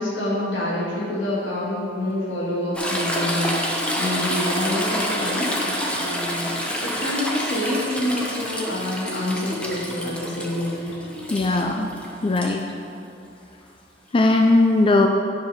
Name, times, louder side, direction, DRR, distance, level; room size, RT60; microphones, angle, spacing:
voice 1, 0.0-5.6 5.9-11.0, left 1 dB, 80° left, -6 dB, 1.9 m, -27 dB
Toilet flush / Trickle dribble, 2.7-12.5 14.3-14.4, equal, 5° left, 0.9 m, -28 dB
voice 2, 11.3-11.9 12.2-12.6 14.1-15.1, left 2 dB, 30° left, 3 dB, 0.4 m, -18 dB
10.5 x 4.8 x 5.7 m, 2.7 s
head